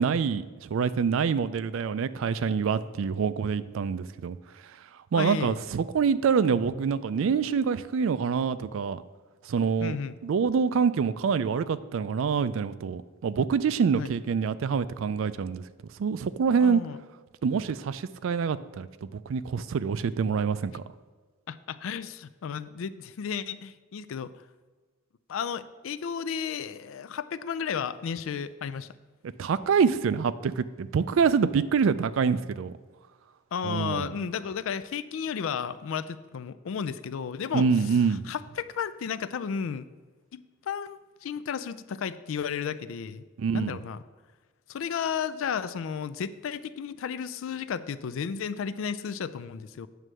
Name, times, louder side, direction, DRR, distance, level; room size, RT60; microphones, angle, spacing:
voice 1, 0.0-4.4 5.1-9.0 9.4-10.0 10.2-15.6 16.0-16.8 17.4-20.8 29.4-32.7 33.6-34.1 37.5-38.2 43.4-43.8, right 6 dB, 70° right, 15 dB, 0.3 m, -26 dB
voice 2, 5.1-5.6 9.8-10.2 13.9-14.1 16.6-17.0 21.5-24.4 25.3-28.9 33.5-37.7 38.3-39.9 40.3-43.3 43.5-44.0 44.7-49.9, left 7 dB, 70° left, 14 dB, 0.3 m, -33 dB
9.1 x 3.3 x 6.2 m, 1.4 s
head